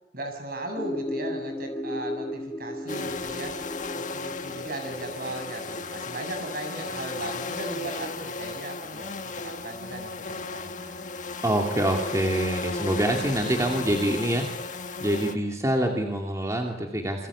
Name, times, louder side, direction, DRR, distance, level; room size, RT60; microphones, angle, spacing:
voice 1, 0.1-3.6 3.9-11.0, right 1 dB, 55° right, 5 dB, 7.2 m, -37 dB
sound 1, 0.8-8.5, left 1 dB, 15° left, 2.0 m, -37 dB
sound 2, 2.9-15.3, left 3 dB, 45° left, 1.7 m, -35 dB
voice 2, 11.4-14.4 15.0-17.3, right 1 dB, 20° right, 1 dB, 2.7 m, -25 dB
28.5 x 24.0 x 8.6 m, 0.99 s
head